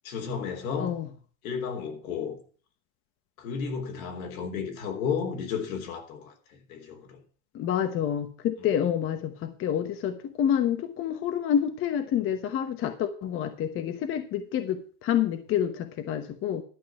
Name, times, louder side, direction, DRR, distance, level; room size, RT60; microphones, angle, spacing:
voice 1, 0.0-1.0 1.4-2.4 3.4-7.2 8.6-8.7, left 6 dB, 80° left, 3.5 m, -33 dB
voice 2, 7.5-16.6, left 9 dB, 30° left, 1.1 m, -28 dB
12.0 x 5.4 x 7.5 m
supercardioid pair, 145°, 41 cm